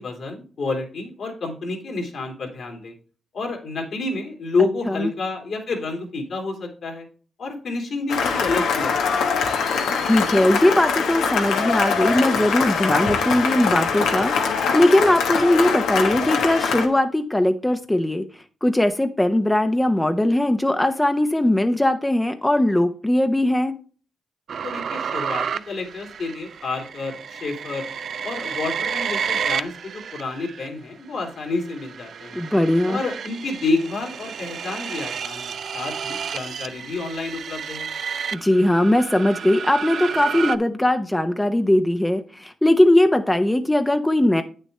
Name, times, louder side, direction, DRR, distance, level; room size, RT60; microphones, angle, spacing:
voice 1, 0.0-2.9 3.3-7.1 7.4-9.3 24.6-27.8 28.2-32.4 32.9-37.9, left 3 dB, 70° left, 1 dB, 2.7 m, -29 dB
Cheering / Applause, 8.1-16.9, left 5 dB, 90° left, 1.1 m, -23 dB
voice 2, 10.0-18.2 18.6-23.7 32.3-33.0 38.3-44.4, left 1 dB, 15° left, 7 dB, 0.7 m, -19 dB
sound 1, 24.5-30.7 31.3-40.6, right 7 dB, 70° right, 0.4 m, -31 dB
8.8 x 6.5 x 3.3 m, 0.40 s
supercardioid pair, 55°, 0 cm